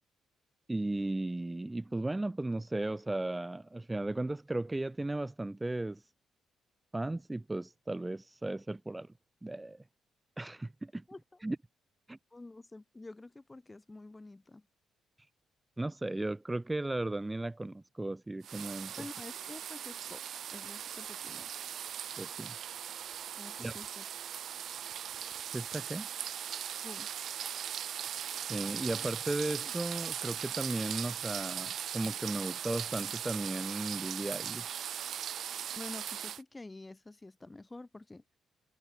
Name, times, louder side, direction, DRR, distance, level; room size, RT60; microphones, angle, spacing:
voice 1, 0.7-6.1 6.9-9.1 9.4-9.8 10.4-11.0 11.4-11.6 12.1-12.2 15.8-18.9 22.2-22.5 23.6-23.7 25.5-26.1 28.1-34.8, right 2 dB, 15° right, 0.9 m, -36 dB
voice 2, 11.1-11.4 12.3-14.7 19.0-20.2 20.5-21.5 23.4-24.1 26.7-27.1 35.8-38.2, left 2 dB, 15° left, 6.2 m, -48 dB
sound 1, 18.4-36.4, right 9 dB, 65° right, 0.3 m, -39 dB
cardioid pair, 90°, 0 cm